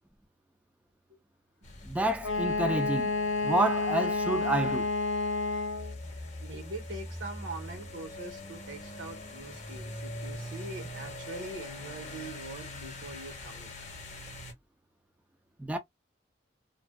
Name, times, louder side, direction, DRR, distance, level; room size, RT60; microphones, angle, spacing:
sound 1, 1.6-14.5, left 1 dB, 40° left, 0.8 m, -43 dB
voice 1, 1.8-3.1 3.4-4.9 15.6-15.8, right 1 dB, 5° right, 0.3 m, -29 dB
Wind instrument woodwind instrument, 2.2-6.0, left 3 dB, 85° left, 0.5 m, -30 dB
voice 2, 6.4-13.7, right 2 dB, 85° right, 1.2 m, -43 dB
2.5 x 2.2 x 2.2 m
head